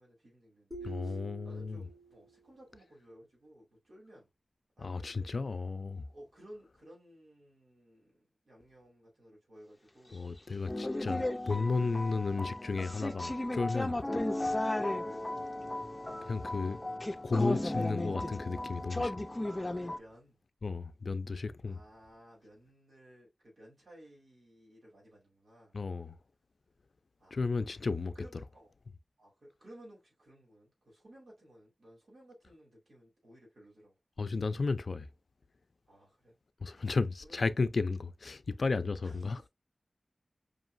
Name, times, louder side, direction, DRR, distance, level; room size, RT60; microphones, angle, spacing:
voice 1, 0.0-4.3 4.8-5.5 6.1-10.2 12.1-13.3 14.7-15.2 19.4-20.4 21.6-25.8 27.2-27.8 28.1-28.7 29.2-33.9 35.9-36.3 36.7-37.5 39.0-39.5, equal, 80° right, 3.2 m, -57 dB
sound 1, 0.7-2.4, right 3 dB, 35° right, 1.5 m, -47 dB
voice 2, 0.8-1.8 4.8-6.0 10.1-14.0 16.2-16.8 17.2-19.2 20.6-21.8 25.7-26.2 27.3-28.1 34.2-35.1 36.6-39.5, left 4 dB, 75° left, 0.4 m, -33 dB
sound 2, 10.7-20.0, left 1 dB, 25° left, 0.6 m, -35 dB
5.1 x 3.1 x 2.6 m
wide cardioid pair, 65°, 0 cm